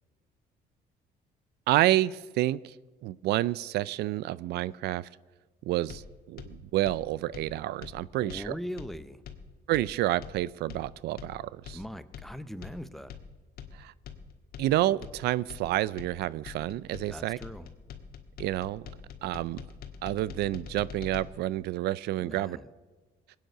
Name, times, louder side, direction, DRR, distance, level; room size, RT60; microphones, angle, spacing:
voice 1, 1.7-2.8 3.0-5.1 5.6-8.5 9.7-11.8 13.7-13.9 14.6-17.4 18.4-18.8 19.2-19.6 20.0-22.6, right 15 dB, 75° right, 20 dB, 0.4 m, -29 dB
sound 1, 5.9-21.2, left 7 dB, 65° left, 1.5 m, -45 dB
voice 2, 8.2-9.2 11.7-13.2 17.1-17.7 22.2-22.7, equal, ahead, 13 dB, 0.7 m, -40 dB
20.5 x 9.3 x 6.6 m, 1.3 s
cardioid pair, 110°, 17 cm